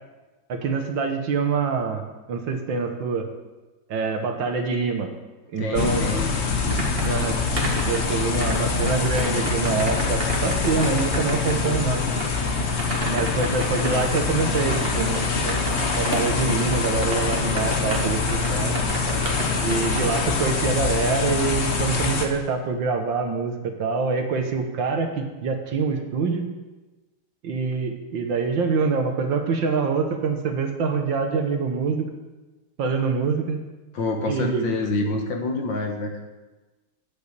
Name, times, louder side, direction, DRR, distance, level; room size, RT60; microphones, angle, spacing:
voice 1, 0.5-2.0 2.3-3.3 3.9-5.1 5.5-6.0 7.1-7.4 7.9-12.1 13.1-15.6 16.0-18.8 19.6-26.5 27.4-32.1 32.8-33.6 34.2-34.7, right 5 dB, 65° right, 5 dB, 1.7 m, -25 dB
voice 2, 5.6-6.8 33.9-36.2, left 2 dB, 60° left, 3 dB, 1.9 m, -27 dB
sound 1, 5.7-22.3, left 5 dB, 45° left, 1.0 m, -25 dB
sound 2, 6.1-20.2, right 1 dB, 30° right, 1.8 m, -32 dB
9.5 x 8.3 x 6.6 m, 1.2 s
omnidirectional pair, 2.4 m